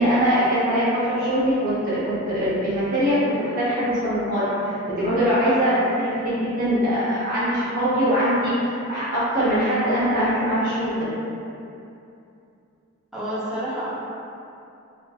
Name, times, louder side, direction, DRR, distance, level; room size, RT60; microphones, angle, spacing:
voice 1, 0.0-11.1, equal, 45° right, -11 dB, 0.7 m, -22 dB
voice 2, 13.1-13.9, equal, ahead, -10 dB, 0.5 m, -28 dB
2.5 x 2.5 x 2.3 m, 2.7 s
head